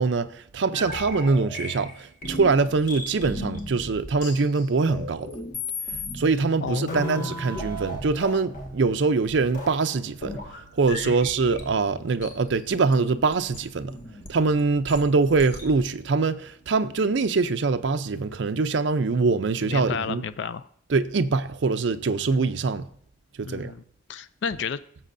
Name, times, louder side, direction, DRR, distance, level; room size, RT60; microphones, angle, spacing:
voice 1, 0.0-5.3 6.1-10.4 10.7-14.0 14.3-20.2 20.9-22.9 23.4-23.7, right 4 dB, 70° right, 0.5 m, -23 dB
sound 1, 0.7-16.0, left 1 dB, 45° left, 1.6 m, -37 dB
voice 2, 6.6-7.3 11.0-11.2 19.6-20.7 23.4-23.8 24.1-24.8, left 6 dB, 70° left, 0.4 m, -31 dB
16.5 x 7.4 x 2.6 m
head